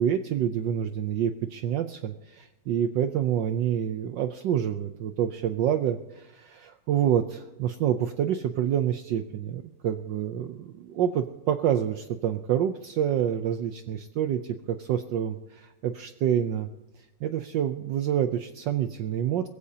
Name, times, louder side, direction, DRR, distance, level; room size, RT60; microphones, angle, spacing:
voice 1, 0.0-16.7 17.2-19.5, right 9 dB, 70° right, 8 dB, 1.2 m, -27 dB
22.0 x 15.0 x 2.8 m, 1.0 s
omnidirectional pair, 2.3 m